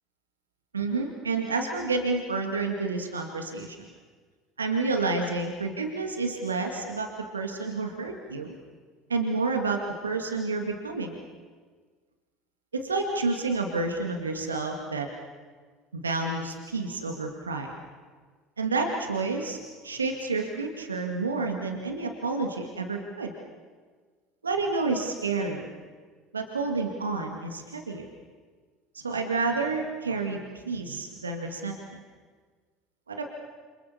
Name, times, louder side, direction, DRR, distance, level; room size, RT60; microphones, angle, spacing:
voice 1, 0.7-3.9 4.6-7.1 7.3-8.6 9.1-11.2 12.7-15.1 15.9-17.7 18.6-23.3 24.4-25.7 26.3-28.1 28.9-30.4 30.7-32.0 33.1-33.2, right 3 dB, 85° right, 3 dB, 2.2 m, -29 dB
28.0 x 27.5 x 7.0 m, 1.5 s
figure-of-eight pair, 65°, 0 cm